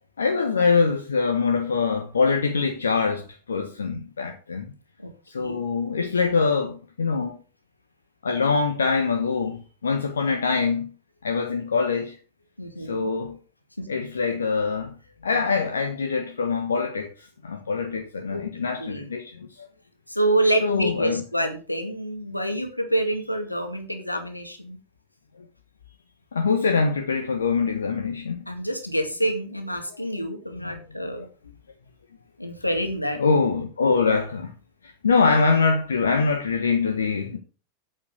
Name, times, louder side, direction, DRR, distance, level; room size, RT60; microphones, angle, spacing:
voice 1, 0.2-4.7 5.3-7.3 8.2-10.9 11.2-12.2 12.8-13.4 13.9-15.0 15.2-19.7 20.6-21.2 26.3-28.5 30.6-30.8 33.2-34.5 34.8-37.4, left 4 dB, 70° left, 1.3 m, -24 dB
voice 2, 5.0-5.6 12.6-13.0 18.3-18.5 18.8-19.0 20.1-24.8 28.5-31.3 32.4-33.2, right 1 dB, 85° left, 2.2 m, -27 dB
8.5 x 8.1 x 6.4 m
figure-of-eight pair, 90°, 0 cm